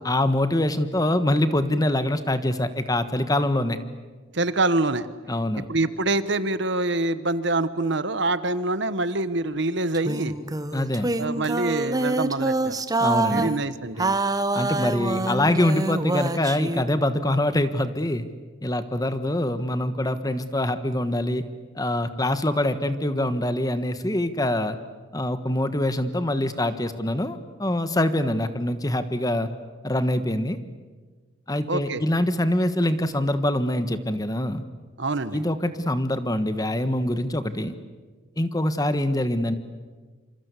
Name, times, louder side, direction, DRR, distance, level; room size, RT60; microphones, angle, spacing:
voice 1, 0.0-3.8 5.3-5.6 10.7-11.1 13.0-13.5 14.5-18.3 18.6-21.4 21.7-24.8 25.1-29.5 29.8-30.6 31.5-34.6 35.3-37.7 38.4-39.6, left 1 dB, 20° left, 10 dB, 1.3 m, -24 dB
voice 2, 4.3-5.1 5.7-10.3 11.2-12.7 13.3-14.2 31.7-32.0 35.0-35.4, right 2 dB, 60° right, 14 dB, 1.2 m, -25 dB
sound 1, 9.9-13.6 14.0-16.8, right 2 dB, 20° right, 1.0 m, -26 dB
27.0 x 26.5 x 8.3 m, 1.4 s
head